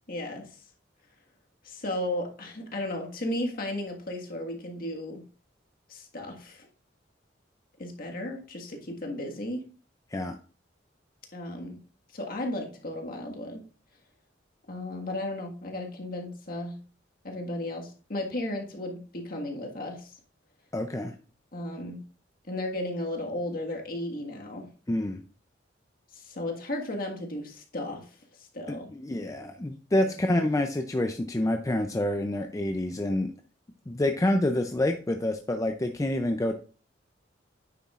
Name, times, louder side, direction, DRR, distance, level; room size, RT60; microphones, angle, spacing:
voice 1, 0.1-0.5 1.6-5.2 5.9-6.7 7.8-9.6 11.3-11.8 12.1-13.7 14.7-16.8 17.2-20.1 21.5-22.0 22.5-24.7 26.1-28.1 28.4-28.9 30.0-30.1, left 1 dB, 50° left, 1 dB, 1.7 m, -34 dB
voice 2, 20.7-21.1 24.9-25.2 28.7-33.3 33.9-36.5, left 1 dB, 20° left, 5 dB, 0.5 m, -27 dB
9.4 x 7.1 x 2.4 m, 0.38 s
head